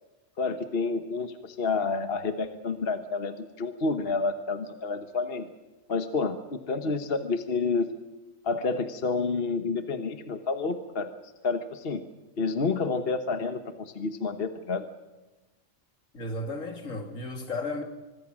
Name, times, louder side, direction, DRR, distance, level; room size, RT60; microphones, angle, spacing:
voice 1, 0.4-5.5 5.9-7.9 8.4-11.1 11.4-12.0 12.4-14.9, left 4 dB, 45° left, 9 dB, 1.4 m, -29 dB
voice 2, 16.1-17.8, left 2 dB, 75° left, 6 dB, 3.0 m, -34 dB
25.5 x 22.0 x 6.2 m, 1.1 s
omnidirectional pair, 1.4 m